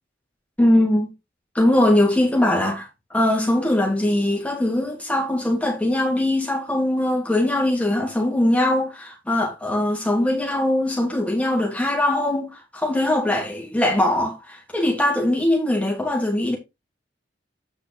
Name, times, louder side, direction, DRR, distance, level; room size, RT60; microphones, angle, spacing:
voice 1, 0.6-1.1 1.5-16.6, left 1 dB, 5° left, 2.9 m, -21 dB
8.8 x 5.5 x 4.1 m
head